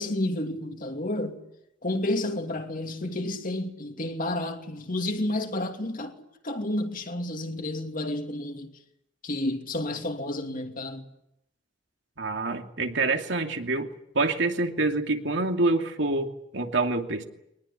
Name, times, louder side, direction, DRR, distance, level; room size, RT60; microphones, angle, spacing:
voice 1, 0.0-1.4 1.8-6.2 6.4-8.7 9.2-11.1, left 1 dB, 45° left, 2.8 m, -30 dB
voice 2, 12.2-13.9 14.1-17.2, right 3 dB, 70° right, 2.7 m, -26 dB
23.0 x 20.0 x 10.0 m
head